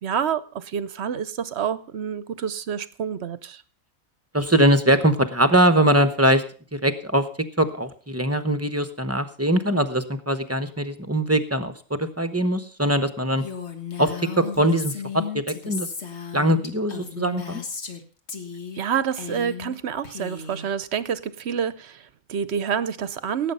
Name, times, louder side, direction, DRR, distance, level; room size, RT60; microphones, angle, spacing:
voice 1, 0.0-3.6 18.8-23.5, right 7 dB, 55° right, 16 dB, 1.0 m, -28 dB
voice 2, 4.3-6.4 6.7-7.2 7.6-13.4 14.0-15.9 16.3-17.6, right 1 dB, 10° right, 11 dB, 0.9 m, -22 dB
Female speech woman speaking, 13.4-18.0 18.3-18.8 19.1-19.8 20.0-20.7, left 6 dB, 50° left, 1.9 m, -34 dB
17.5 x 8.4 x 5.4 m, 0.39 s
omnidirectional pair, 1.4 m